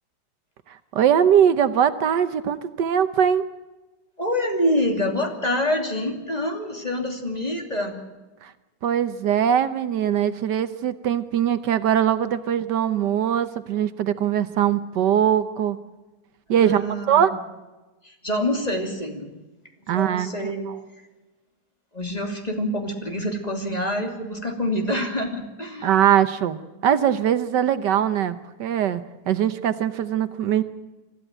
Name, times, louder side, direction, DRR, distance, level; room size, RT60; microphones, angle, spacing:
voice 1, 0.7-3.4 8.4-8.5 8.8-15.8 16.5-17.3 19.9-20.3 25.8-26.6 26.8-30.6, right 9 dB, 75° right, 12 dB, 1.5 m, -21 dB
voice 2, 4.2-8.0 16.5-17.4 18.0-19.3 19.9-20.7 21.9-25.9, left 1 dB, 20° left, 3 dB, 3.0 m, -26 dB
25.0 x 14.0 x 9.0 m, 1.1 s
omnidirectional pair, 1.9 m